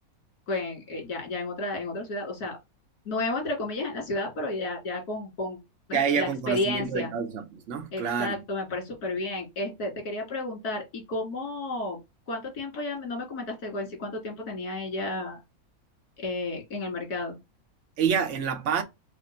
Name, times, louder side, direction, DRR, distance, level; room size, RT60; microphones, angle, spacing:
voice 1, 0.5-2.6 3.1-5.6 5.9-7.1 7.9-12.0 12.3-15.4 16.2-17.4, left 2 dB, 85° left, 2.3 m, -32 dB
voice 2, 5.9-8.4 18.0-18.8, right 6 dB, 55° right, 1.1 m, -27 dB
5.0 x 2.1 x 4.3 m
omnidirectional pair, 1.6 m